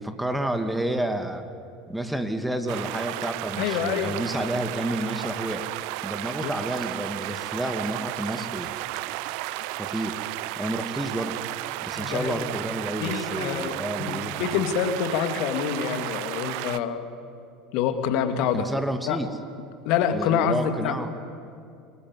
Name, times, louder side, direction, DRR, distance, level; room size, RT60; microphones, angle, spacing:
voice 1, 0.0-1.5 1.9-5.6 6.0-8.7 9.8-10.2 10.6-11.4 11.8-14.7 18.5-19.3 20.1-21.1, right 1 dB, 5° right, 8 dB, 2.3 m, -30 dB
sound 1, 2.7-16.8, right 18 dB, 60° right, 0.7 m, -33 dB
voice 2, 3.6-4.1 6.4-6.5 11.9-12.4 13.0-13.7 14.1-17.0 17.7-18.7 19.1-19.2 19.8-21.1, left 8 dB, 55° left, 8 dB, 2.4 m, -26 dB
27.5 x 21.0 x 9.7 m, 2.5 s
figure-of-eight pair, 70°, 0 cm